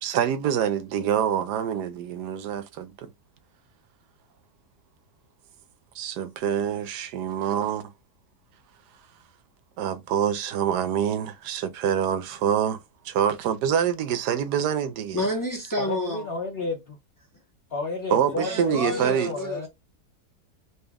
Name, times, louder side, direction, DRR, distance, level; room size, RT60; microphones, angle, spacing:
voice 1, 0.0-3.1 5.9-7.9 9.8-12.8 13.0-15.3 18.1-19.3, right 9 dB, 85° right, 1.2 m, -26 dB
voice 2, 15.1-16.2 18.3-19.7, left 1 dB, 15° left, 0.7 m, -29 dB
voice 3, 15.8-17.0 17.7-19.7, left 3 dB, 50° left, 0.8 m, -31 dB
4.1 x 2.2 x 3.4 m
omnidirectional pair, 1.7 m